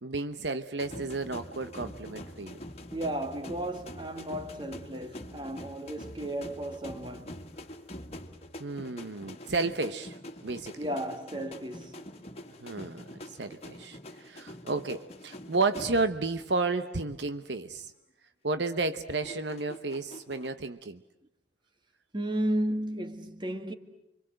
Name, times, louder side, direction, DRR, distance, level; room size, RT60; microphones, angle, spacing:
voice 1, 0.0-2.6 8.6-10.2 10.4-10.9 12.6-13.0 13.4-17.9 18.4-21.0, right 3 dB, 75° right, 1.0 m, -32 dB
sound 1, 0.8-16.4 16.7-17.0 19.2-20.5, left 1 dB, 35° left, 1.9 m, -45 dB
voice 2, 2.9-7.5 10.8-12.1 22.1-23.7, right 1 dB, 25° right, 1.8 m, -34 dB
30.0 x 24.5 x 7.8 m
head